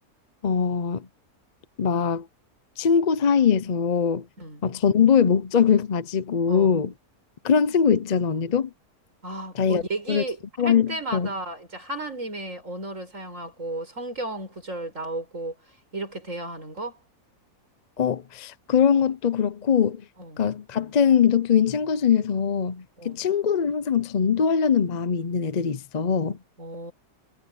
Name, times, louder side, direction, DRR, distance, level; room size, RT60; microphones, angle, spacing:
voice 1, 0.4-1.1 1.8-2.3 2.8-4.3 4.6-6.9 7.4-8.7 9.5-9.8 10.1-10.2 10.6-11.3 18.0-20.0 20.4-26.4, left 7 dB, 45° left, 0.5 m, -22 dB
voice 2, 6.5-6.8 9.2-10.4 10.6-15.6 15.9-17.0 20.2-20.4 23.0-23.2 26.6-26.9, right 2 dB, 55° right, 6.3 m, -34 dB
omnidirectional pair, 1.6 m